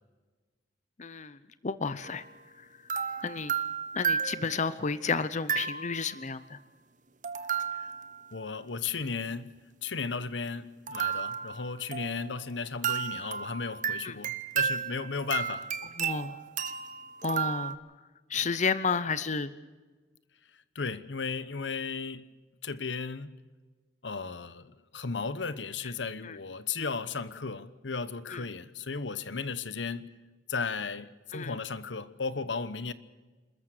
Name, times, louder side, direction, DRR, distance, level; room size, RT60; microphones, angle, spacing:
voice 1, 1.0-2.2 2.6-2.7 3.2-3.5 3.9-6.6 14.0-14.2 16.0-16.4 17.2-17.8 18.3-19.5 26.2-26.4 28.3-28.4 31.3-31.6, left 5 dB, 40° left, 0.8 m, -31 dB
sound 1, 2.0-2.3 2.9-4.8 5.5-6.2 7.2-8.3 10.9-12.5 12.8-17.8, right 7 dB, 45° right, 1.1 m, -33 dB
voice 2, 8.3-15.7 20.5-22.3 22.6-23.4 24.0-30.1 30.5-32.9, left 4 dB, 90° left, 1.1 m, -35 dB
28.0 x 14.0 x 6.7 m
head